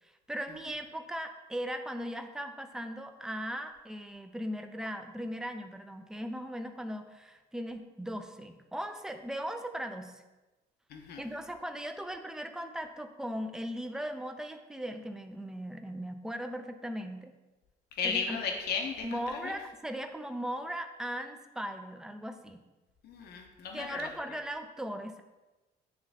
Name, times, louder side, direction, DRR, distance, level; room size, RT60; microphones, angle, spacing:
voice 1, 0.0-10.2 11.2-17.3 18.0-18.4 19.0-22.6 23.7-25.2, equal, 5° right, 6 dB, 0.5 m, -38 dB
voice 2, 10.9-11.2 18.0-19.5 23.0-24.1, left 5 dB, 70° left, 3 dB, 1.0 m, -35 dB
9.4 x 3.2 x 3.6 m, 1.1 s
cardioid pair, 110°, 17 cm